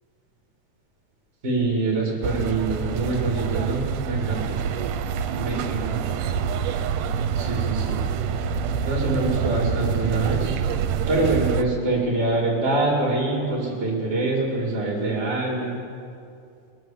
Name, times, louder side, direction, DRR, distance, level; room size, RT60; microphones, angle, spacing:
voice 1, 1.4-4.6 5.4-6.2 7.3-8.0 8.8-10.6 11.1-15.8, right 2 dB, 25° right, -2 dB, 2.0 m, -25 dB
sound 1, 2.2-11.6, right 7 dB, 85° right, 2.2 m, -26 dB
21.0 x 7.8 x 7.1 m, 2.5 s
omnidirectional pair, 3.7 m